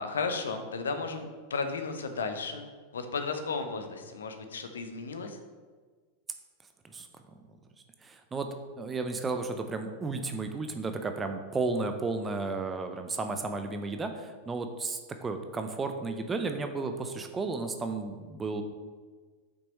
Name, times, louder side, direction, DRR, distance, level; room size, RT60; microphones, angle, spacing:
voice 1, 0.0-2.6 2.9-5.4, left 4 dB, 65° left, 7 dB, 0.8 m, -34 dB
voice 2, 8.0-8.5 8.8-18.6, right 3 dB, 15° right, 7 dB, 0.6 m, -33 dB
8.0 x 6.0 x 3.1 m, 1.5 s
figure-of-eight pair, 90°, 0 cm